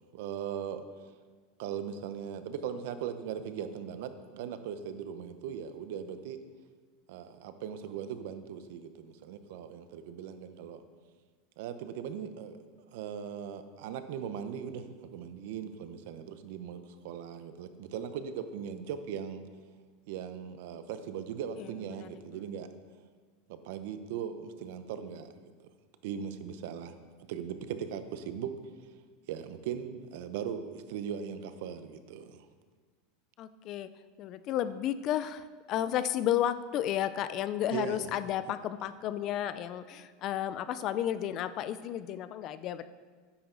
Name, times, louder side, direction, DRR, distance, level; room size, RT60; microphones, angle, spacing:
voice 1, 0.1-0.8 1.6-6.4 7.1-10.8 11.6-12.6 12.9-19.4 20.1-22.7 23.5-25.3 26.0-26.9 27.3-28.5 29.3-32.5 37.7-38.1, right 8 dB, 60° right, 10 dB, 0.8 m, -39 dB
voice 2, 33.4-33.9 34.2-42.8, left 11 dB, 30° left, 14 dB, 0.4 m, -32 dB
12.5 x 10.0 x 3.9 m, 1.5 s
supercardioid pair, 170°, 0 cm